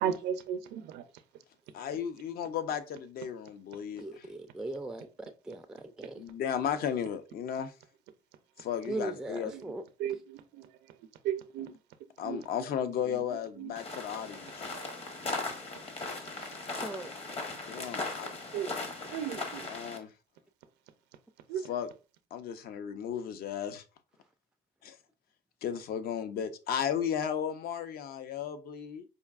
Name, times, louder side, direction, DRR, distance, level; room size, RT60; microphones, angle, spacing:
voice 1, 0.0-1.0 9.5-9.6 10.0-10.6 11.2-11.7 12.2-12.4 13.6-13.7 14.7-14.9 18.2-18.7 19.1-19.6 21.5-21.7, right 9 dB, 85° right, 0.5 m, -35 dB
voice 2, 1.7-4.3 6.2-7.7 8.6-9.5 12.2-14.8 17.7-18.3 19.6-20.1 21.6-21.9 22.3-23.8 24.8-25.0 25.6-29.0, left 8 dB, 65° left, 0.6 m, -35 dB
voice 3, 4.0-6.2 8.9-9.8 16.1-16.5 16.8-17.1, right 2 dB, 5° right, 0.3 m, -39 dB
sound 1, 13.8-20.0, left 3 dB, 35° left, 0.9 m, -38 dB
5.0 x 2.6 x 2.4 m
cardioid pair, 110°, 17 cm